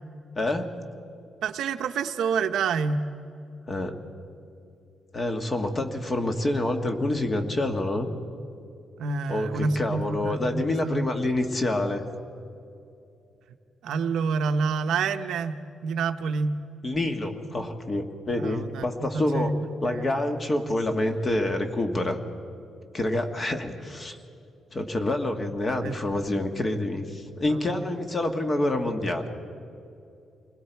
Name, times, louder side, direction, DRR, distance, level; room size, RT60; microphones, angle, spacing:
voice 1, 0.3-0.7 3.7-3.9 5.1-8.1 9.3-12.0 16.8-19.5 19.8-22.2 22.9-24.2 24.7-29.3, left 1 dB, 25° left, 5 dB, 1.5 m, -27 dB
voice 2, 1.4-3.0 9.0-11.0 13.8-16.6 18.3-19.6 19.9-20.0 25.8-25.9 27.4-27.6, right 5 dB, 80° right, 8 dB, 0.8 m, -28 dB
28.0 x 21.0 x 4.6 m, 2.6 s
cardioid pair, 140°, 0 cm